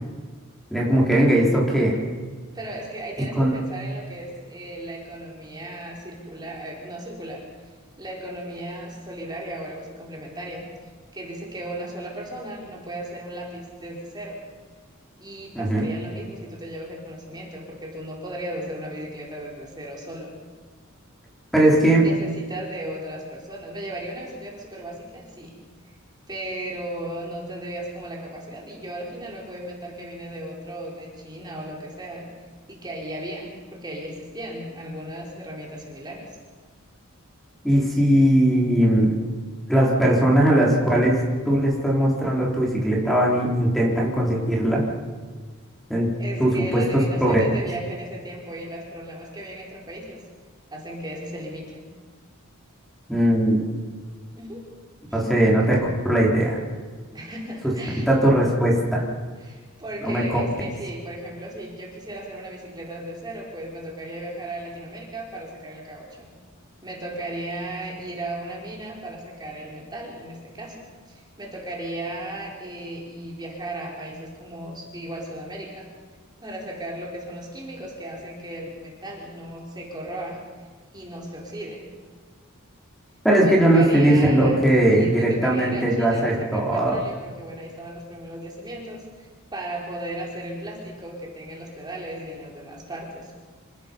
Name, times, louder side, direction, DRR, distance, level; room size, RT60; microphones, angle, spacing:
voice 1, 0.7-2.0 3.3-3.5 15.5-15.9 21.5-22.1 37.6-39.1 39.7-44.8 45.9-46.1 46.4-47.3 53.1-53.7 55.1-55.8 56.1-56.6 58.1-59.0 60.0-60.4 83.2-86.9, right 1 dB, ahead, -3 dB, 4.3 m, -19 dB
voice 2, 2.5-7.7 8.0-10.7 11.1-14.4 15.2-20.3 22.0-25.5 26.3-32.3 32.7-36.4 46.2-50.2 50.7-51.8 54.3-54.6 55.1-55.5 57.1-58.1 59.4-66.3 66.8-75.9 76.4-80.4 80.9-81.9 83.4-84.6 84.9-93.3, right 1 dB, 20° right, -2 dB, 4.2 m, -36 dB
27.5 x 19.5 x 5.5 m, 1.5 s
head